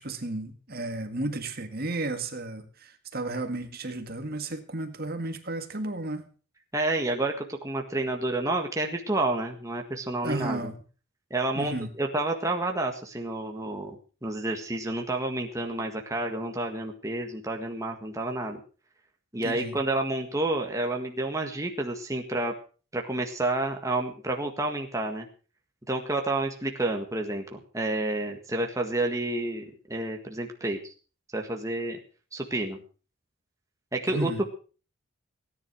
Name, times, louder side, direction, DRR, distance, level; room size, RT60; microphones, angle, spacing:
voice 1, 0.0-6.2 10.2-10.8 11.6-11.9 19.4-19.8 34.1-34.4, right 2 dB, 45° right, 7 dB, 1.9 m, -33 dB
voice 2, 6.7-10.7 11.3-14.0 14.2-18.6 19.3-22.6 22.9-25.3 25.9-30.9 31.3-32.0 32.3-32.8 33.9-34.5, right 2 dB, 15° right, 2 dB, 1.7 m, -29 dB
18.0 x 10.0 x 6.2 m, 0.38 s
head